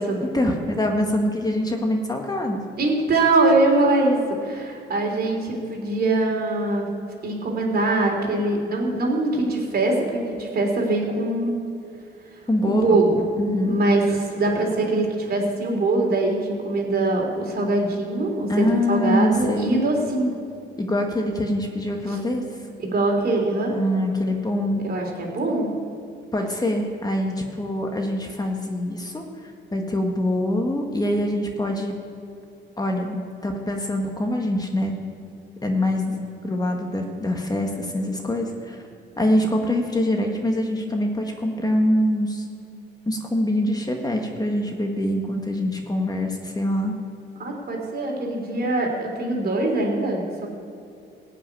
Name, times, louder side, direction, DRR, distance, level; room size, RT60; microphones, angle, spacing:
voice 1, 0.3-2.6 12.5-13.0 13.4-13.8 18.5-19.8 20.8-22.4 23.7-24.9 26.3-31.9 32.8-33.2 33.4-34.9 35.6-36.2 36.4-38.8 39.2-42.4 43.1-46.9, left 1 dB, 20° left, 2 dB, 1.6 m, -24 dB
voice 2, 2.8-6.9 7.2-11.6 12.7-13.2 13.7-20.3 22.1-22.2 22.8-23.7 24.8-25.7 47.4-50.5, right 2 dB, 50° right, 0 dB, 3.3 m, -22 dB
15.5 x 5.9 x 9.5 m, 2.5 s
cardioid pair, 90°, 20 cm